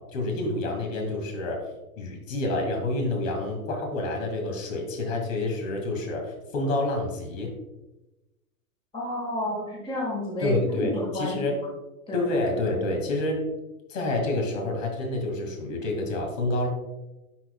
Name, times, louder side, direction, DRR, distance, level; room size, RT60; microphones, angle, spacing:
voice 1, 0.0-1.6 2.0-7.5 10.4-11.6 12.1-13.5 13.9-16.7, left 2 dB, 60° left, 2 dB, 2.1 m, -28 dB
voice 2, 8.9-11.4 12.1-12.2, left 1 dB, 10° left, -3 dB, 1.5 m, -30 dB
11.0 x 4.4 x 2.2 m, 1.0 s
hypercardioid pair, 140°, 43 cm